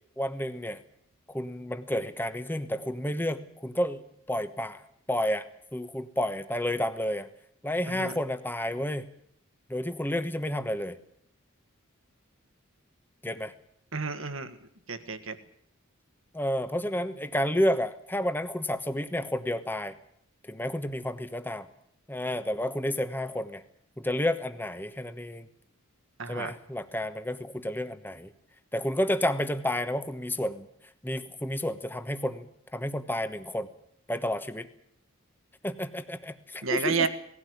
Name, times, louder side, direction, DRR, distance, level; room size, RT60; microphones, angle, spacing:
voice 1, 0.2-0.8 1.3-4.8 5.1-5.5 5.7-7.3 7.6-9.0 9.7-11.0 13.2-13.5 16.3-19.9 20.5-21.7 22.1-23.6 24.0-25.5 26.3-28.3 28.7-30.7 31.0-33.7 34.1-34.7 35.6-37.1, left 1 dB, 10° left, 10 dB, 1.1 m, -30 dB
voice 2, 13.9-14.6 14.9-15.4 26.2-26.5 36.6-37.1, right 4 dB, 65° right, 9 dB, 1.7 m, -30 dB
19.5 x 16.0 x 9.5 m, 0.69 s
head